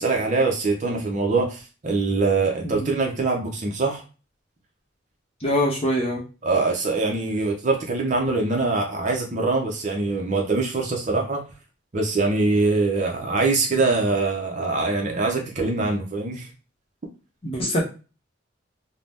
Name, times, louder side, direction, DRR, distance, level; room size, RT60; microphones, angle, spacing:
voice 1, 0.0-4.0 6.4-11.4 11.9-16.5, right 3 dB, 40° right, 1 dB, 0.6 m, -23 dB
voice 2, 5.4-6.2 17.4-17.8, left 1 dB, 30° left, -2 dB, 0.7 m, -24 dB
2.7 x 2.0 x 3.4 m, 0.33 s
head